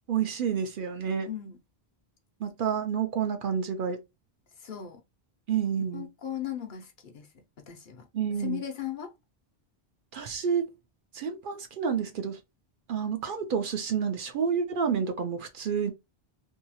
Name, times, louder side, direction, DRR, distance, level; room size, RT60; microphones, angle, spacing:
voice 1, 0.1-1.3 2.4-4.0 5.5-6.1 8.1-8.6 10.1-10.7 11.1-12.4 12.9-15.9, right 7 dB, 60° right, 0.7 m, -29 dB
voice 2, 1.3-1.6 4.6-5.0 5.9-7.3 7.7-8.1 8.4-9.1, left 11 dB, 60° left, 0.7 m, -37 dB
2.7 x 2.2 x 2.8 m
omnidirectional pair, 1.0 m